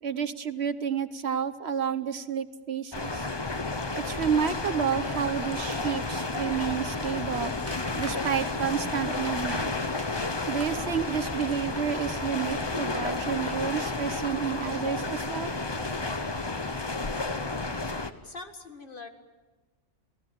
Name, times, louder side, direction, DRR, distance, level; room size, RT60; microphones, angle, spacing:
voice 1, 0.0-3.2 3.9-7.5 7.9-9.7 10.5-15.5, right 7 dB, 60° right, 12 dB, 1.1 m, -30 dB
sound 1, 2.9-18.1, left 3 dB, 25° left, 1.0 m, -31 dB
sound 2, 6.8-13.4 13.8-14.0 14.4-14.5, right 1 dB, 10° right, 1.5 m, -47 dB
voice 2, 18.2-19.1, left 3 dB, 45° left, 6 dB, 1.9 m, -42 dB
30.0 x 18.0 x 7.5 m, 1.2 s
omnidirectional pair, 1.2 m